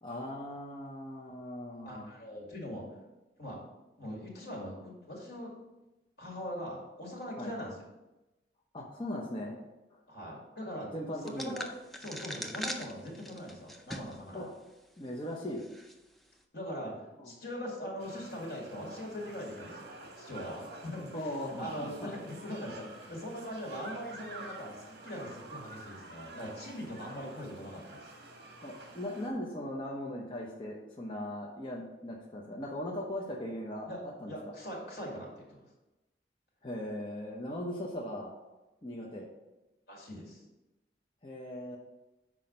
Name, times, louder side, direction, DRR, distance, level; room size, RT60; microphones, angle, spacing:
voice 1, 0.0-2.1 7.4-7.5 8.7-9.5 9.9-10.0 10.9-11.6 14.3-14.5 15.0-15.6 17.2-17.3 21.1-22.1 27.2-27.3 28.6-33.9 34.2-34.3 36.6-38.3 38.8-39.3 41.2-41.8, left 1 dB, 30° left, -2 dB, 0.7 m, -39 dB
voice 2, 1.8-2.8 3.4-3.6 4.0-5.5 6.2-7.7 10.1-10.9 11.2-11.7 12.0-14.5 16.5-16.9 17.2-28.1 33.9-35.7 39.9-40.4, equal, 75° left, -2 dB, 2.2 m, -41 dB
sound 1, 11.3-14.2 14.7-14.8 15.6-15.9, equal, ahead, 0.4 m, -41 dB
sound 2, 18.0-29.3, right 2 dB, 60° right, 1.2 m, -49 dB
5.9 x 4.8 x 5.2 m, 1.0 s
head